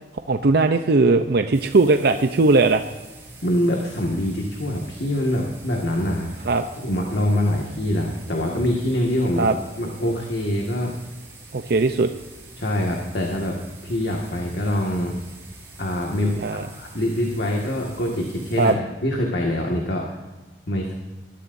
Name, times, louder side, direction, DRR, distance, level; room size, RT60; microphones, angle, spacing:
voice 1, 0.3-2.8 6.5-6.6 9.4-9.6 11.5-12.1 16.4-16.7 18.6-18.7, right 3 dB, 65° right, 7 dB, 0.6 m, -18 dB
sound 1, 1.5-18.7, right 2 dB, 15° right, 5.0 m, -45 dB
voice 2, 3.4-6.5 6.8-9.5 9.8-10.9 12.6-13.5 13.8-15.2 15.8-20.1 20.7-20.9, left 1 dB, 65° left, 0 dB, 1.9 m, -24 dB
20.5 x 13.0 x 2.7 m, 1.2 s
head